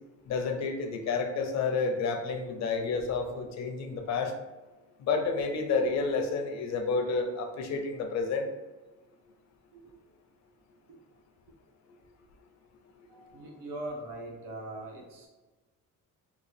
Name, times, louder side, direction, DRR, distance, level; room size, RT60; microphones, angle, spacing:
voice 1, 0.3-4.3 5.0-8.5, left 4 dB, 60° left, 5 dB, 0.5 m, -30 dB
voice 2, 13.1-15.3, right 1 dB, 80° right, -1 dB, 1.0 m, -41 dB
3.7 x 2.3 x 3.2 m, 1.2 s
cardioid pair, 155°, 31 cm